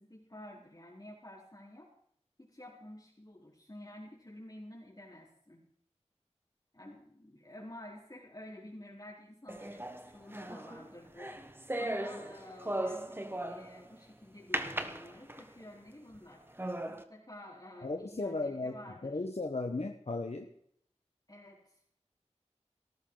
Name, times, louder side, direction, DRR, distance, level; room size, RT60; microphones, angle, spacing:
voice 1, 0.0-1.9 2.4-5.7 6.7-11.4 11.8-16.4 16.9-19.2 21.3-21.8, left 1 dB, 35° left, -4 dB, 4.0 m, -50 dB
sound 1, 9.5-13.9 14.5-15.6 16.1-16.2 16.6-17.0, right 1 dB, 20° right, 1.2 m, -38 dB
voice 2, 17.8-18.8 19.0-20.5, left 3 dB, 65° left, 4 dB, 1.1 m, -35 dB
18.0 x 13.5 x 4.0 m, 0.67 s
wide cardioid pair, 50°, 12 cm